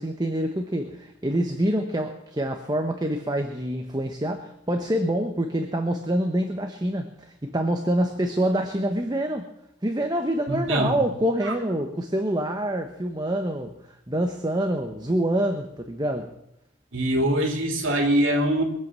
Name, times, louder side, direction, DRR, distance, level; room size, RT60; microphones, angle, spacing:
voice 1, 0.0-9.5 9.8-13.7 14.1-16.3, right 1 dB, 20° right, 5 dB, 1.0 m, -26 dB
voice 2, 10.5-11.0 11.4-11.5 16.9-18.6, right 1 dB, 75° right, 3 dB, 2.8 m, -23 dB
22.5 x 8.1 x 7.5 m, 0.81 s
head